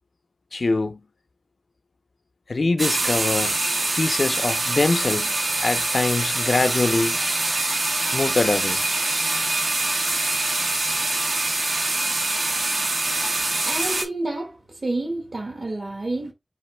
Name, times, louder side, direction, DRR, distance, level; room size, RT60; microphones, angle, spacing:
voice 1, 0.5-1.0 2.5-3.6 4.0-7.3 8.1-8.8, left 3 dB, 80° left, 0.5 m, -23 dB
sound 1, 2.8-14.0, right 2 dB, 85° right, 1.2 m, -24 dB
voice 2, 13.4-16.3, right 2 dB, 65° right, 1.5 m, -29 dB
4.0 x 2.9 x 4.3 m
wide cardioid pair, 55°, 0 cm